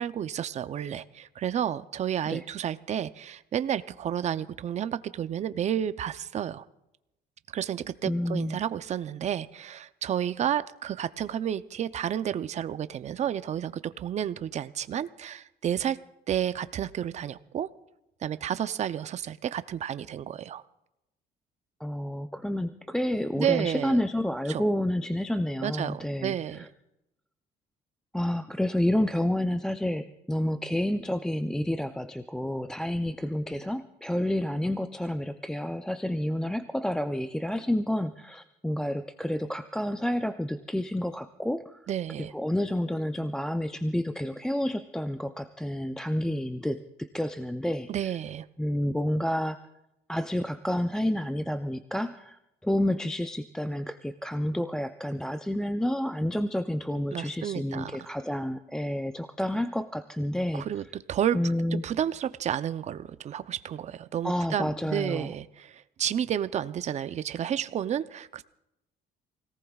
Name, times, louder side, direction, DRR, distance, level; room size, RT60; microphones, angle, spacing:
voice 1, 0.0-6.6 7.5-16.0 16.3-17.7 18.2-20.6 23.4-24.0 24.5-24.7 25.6-26.7 41.9-42.3 47.9-48.5 57.1-58.0 60.5-60.8 61.1-61.4 61.7-68.4, right 9 dB, 40° right, 13 dB, 0.6 m, -31 dB
voice 2, 8.0-8.6 21.8-26.7 28.1-41.8 42.3-48.1 48.6-49.6 50.1-60.6 61.3-61.8 64.2-65.3, left 1 dB, 5° left, 8 dB, 0.5 m, -29 dB
28.5 x 18.0 x 2.4 m, 0.89 s
cardioid pair, 110°, 17 cm